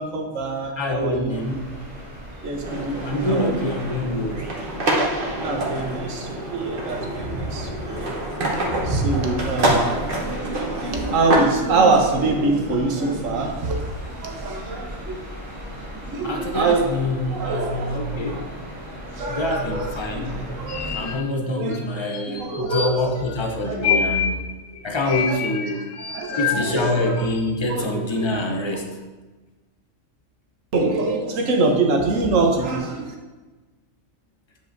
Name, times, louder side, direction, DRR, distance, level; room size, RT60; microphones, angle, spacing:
voice 1, 0.0-1.6 2.4-3.6 5.4-8.2 8.5-15.3 15.7-15.9 16.1-18.5 19.0-21.2 21.6-23.2 23.6-24.0 25.0-25.4 26.1-27.3 27.6-28.9 30.7-33.1, right 3 dB, 80° right, 2 dB, 1.3 m, -25 dB
voice 2, 0.8-1.7 3.0-4.5 16.2-18.5 19.3-20.4 20.9-24.4 24.8-25.8 26.4-28.9, left 1 dB, 30° left, 2 dB, 0.5 m, -26 dB
sound 1, 1.3-21.2, equal, 25° right, 1.4 m, -37 dB
sound 2, 2.6-11.4, right 1 dB, 45° right, 1.3 m, -26 dB
sound 3, 20.7-21.4 21.7-21.8 22.0-23.4 23.6-27.6, left 7 dB, 70° left, 0.8 m, -27 dB
8.7 x 5.1 x 2.6 m, 1.2 s
omnidirectional pair, 1.3 m